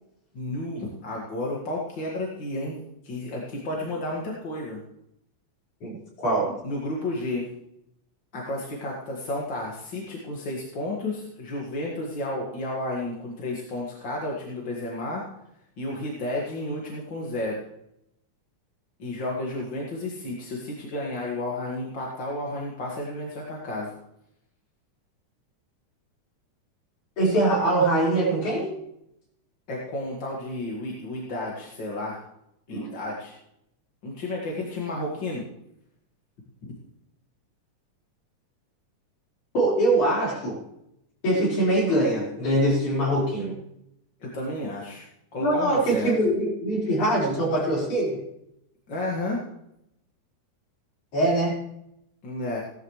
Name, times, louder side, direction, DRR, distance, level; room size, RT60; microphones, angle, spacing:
voice 1, 0.3-2.8 3.0-4.8 6.6-7.5 8.3-15.2 15.8-17.6 19.0-23.9 29.7-32.2 32.7-33.3 34.0-35.4 36.6-36.7 44.2-45.0 45.3-46.1 48.9-49.4 52.2-52.6, left 1 dB, 40° left, -3 dB, 2.4 m, -32 dB
voice 2, 5.8-6.6 27.2-28.8 32.7-32.9 39.5-40.6 41.2-43.5 45.4-48.2 51.1-51.6, right 1 dB, 70° left, -5 dB, 6.4 m, -23 dB
17.5 x 12.5 x 3.2 m, 0.79 s
omnidirectional pair, 3.5 m